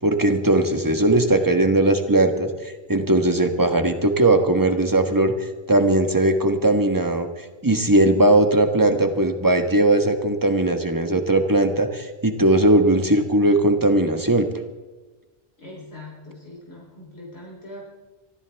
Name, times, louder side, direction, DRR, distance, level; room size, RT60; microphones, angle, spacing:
voice 1, 0.0-7.3 7.6-14.5, right 1 dB, 20° right, 6 dB, 1.4 m, -19 dB
voice 2, 15.6-17.9, left 1 dB, 80° left, -4 dB, 4.0 m, -41 dB
24.5 x 14.5 x 3.5 m, 1.2 s
omnidirectional pair, 1.0 m